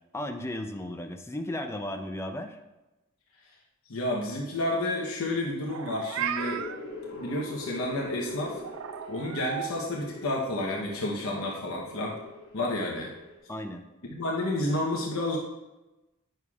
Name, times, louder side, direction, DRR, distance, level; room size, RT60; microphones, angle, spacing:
voice 1, 0.1-2.6 13.5-13.8, left 1 dB, 10° left, 5 dB, 0.5 m, -35 dB
voice 2, 3.9-6.6 7.1-8.6 9.1-12.2 12.5-13.1 14.1-15.4, left 1 dB, 75° left, -2 dB, 0.9 m, -30 dB
Meow, 5.6-6.8 8.6-9.7, right 9 dB, 65° right, 0.3 m, -34 dB
sound 1, 6.1-13.4, left 2 dB, 60° left, 2.5 m, -43 dB
9.0 x 6.5 x 2.4 m, 1.0 s
head